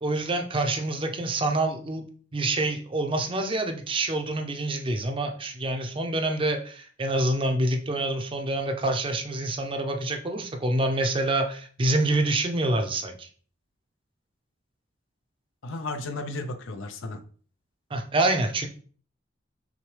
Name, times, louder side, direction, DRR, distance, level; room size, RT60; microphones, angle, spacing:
voice 1, 0.0-2.0 2.3-13.3 17.9-18.7, right 2 dB, 25° right, 5 dB, 0.5 m, -26 dB
voice 2, 15.6-17.2, left 2 dB, 80° left, 7 dB, 0.5 m, -34 dB
5.9 x 2.1 x 3.2 m, 0.43 s
head